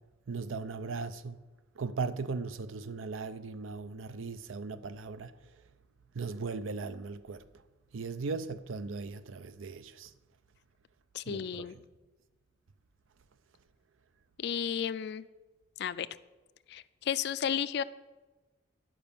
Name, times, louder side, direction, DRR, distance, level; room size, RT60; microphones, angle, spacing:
voice 1, 0.3-1.4 1.8-5.3 6.2-7.4 7.9-10.1 11.3-11.7, right 4 dB, 90° right, 0.5 m, -38 dB
voice 2, 11.1-11.8 14.4-15.2 15.8-16.1 16.7-17.8, left 8 dB, 55° left, 0.3 m, -33 dB
10.5 x 5.0 x 6.9 m
head